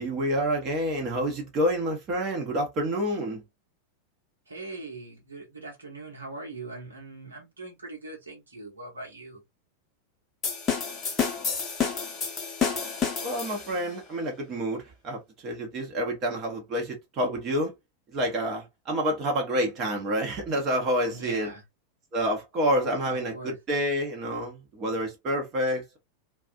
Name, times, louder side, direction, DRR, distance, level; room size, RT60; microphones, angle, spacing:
voice 1, 0.0-3.4 13.2-17.7 18.1-21.5 22.1-26.0, equal, 30° right, 1.0 m, -28 dB
voice 2, 4.5-9.4 21.1-21.6 23.0-23.6, right 2 dB, 75° right, 1.1 m, -41 dB
sound 1, 10.4-13.9, left 6 dB, 20° left, 0.8 m, -29 dB
2.5 x 2.3 x 2.4 m
figure-of-eight pair, 90°, 0 cm